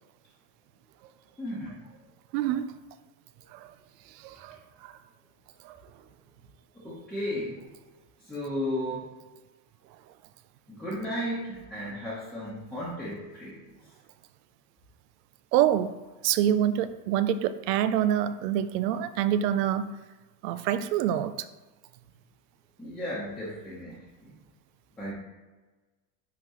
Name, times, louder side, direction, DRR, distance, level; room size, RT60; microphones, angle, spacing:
voice 1, 1.4-1.8 6.7-7.6 8.2-9.0 10.7-13.7 22.8-24.3 25.0-25.1, left 1 dB, ahead, -8 dB, 1.0 m, -34 dB
voice 2, 2.3-2.6 3.5-3.7 4.2-4.9 5.6-5.8 15.5-15.9 16.2-19.9 20.4-21.5, right 10 dB, 90° right, 13 dB, 0.6 m, -26 dB
10.5 x 3.9 x 3.1 m, 1.2 s
cardioid pair, 165°, 47 cm